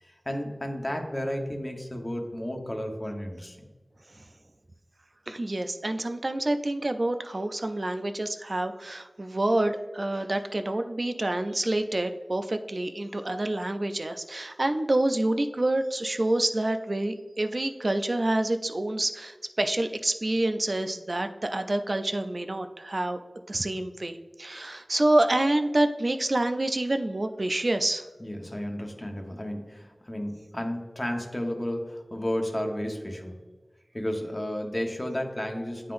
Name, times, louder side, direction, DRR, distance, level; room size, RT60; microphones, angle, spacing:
voice 1, 0.0-3.7 28.2-33.4 33.9-35.9, equal, 20° left, 2 dB, 1.0 m, -32 dB
voice 2, 5.3-23.2 23.5-28.0, right 1 dB, 45° right, 8 dB, 0.4 m, -27 dB
10.0 x 3.8 x 2.5 m, 1.3 s
wide cardioid pair, 60°, 0 cm